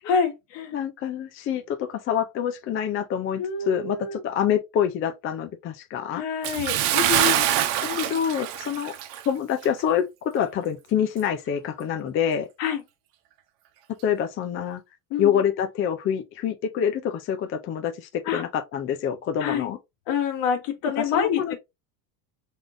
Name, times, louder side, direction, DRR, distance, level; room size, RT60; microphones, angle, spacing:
voice 1, 0.0-0.7 3.4-4.2 6.1-7.5 7.8-8.2 12.6-12.8 15.1-15.4 18.3-18.4 19.4-19.7 20.1-21.6, left 6 dB, 65° left, 1.7 m, -27 dB
voice 2, 0.7-6.2 8.0-9.0 9.3-12.5 14.0-14.8 15.2-19.8 21.0-21.5, left 9 dB, 30° left, 0.4 m, -26 dB
Bathtub (filling or washing) / Splash splatter, 6.4-9.3 9.6-9.8 10.4-10.5, right 12 dB, 65° right, 0.9 m, -24 dB
3.8 x 3.6 x 2.5 m
cardioid pair, 140°, 47 cm